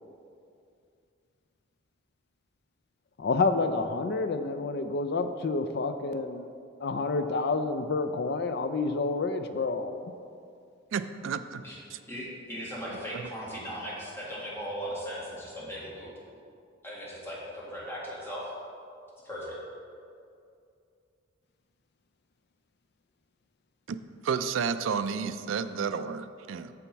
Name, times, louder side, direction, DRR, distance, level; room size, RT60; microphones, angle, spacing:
voice 1, 3.2-6.4 6.8-10.0, left 3 dB, 55° left, 8 dB, 0.4 m, -29 dB
voice 2, 10.9-11.6 11.9-12.0 13.1-13.2 23.9-24.0 24.2-26.7, right 6 dB, 75° right, 11 dB, 0.3 m, -31 dB
voice 3, 12.1-16.1 16.8-18.5 19.2-19.5, equal, 10° left, -7 dB, 1.8 m, -38 dB
7.0 x 7.0 x 4.6 m, 2.4 s
head